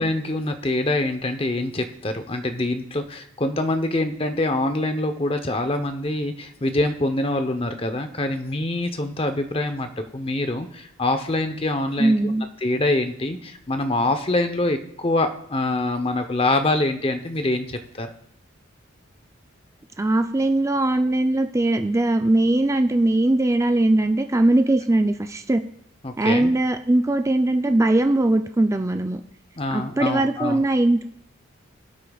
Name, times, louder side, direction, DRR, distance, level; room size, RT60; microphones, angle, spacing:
voice 1, 0.0-12.2 12.6-18.1 26.0-26.5 29.6-30.6, left 2 dB, 25° left, 7 dB, 0.7 m, -25 dB
voice 2, 12.0-12.4 20.0-25.6 26.2-29.2 29.7-31.0, right 2 dB, 15° right, 7 dB, 0.4 m, -20 dB
21.0 x 8.4 x 2.3 m, 0.69 s
head